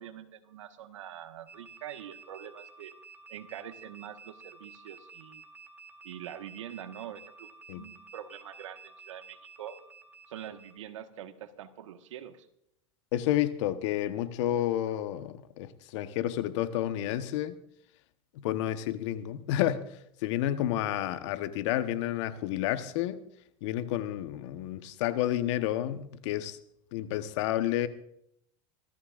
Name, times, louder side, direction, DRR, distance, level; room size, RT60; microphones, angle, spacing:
voice 1, 0.0-2.9 3.3-5.4 6.0-9.8 10.3-12.5, right 10 dB, 90° right, 1.5 m, -44 dB
sound 1, 1.5-10.8, right 4 dB, 10° right, 2.7 m, -52 dB
voice 2, 13.1-17.6 18.4-19.9 20.2-23.2 23.6-26.6 26.9-27.9, left 12 dB, 70° left, 1.1 m, -30 dB
26.5 x 14.0 x 2.5 m
supercardioid pair, 110°, 16 cm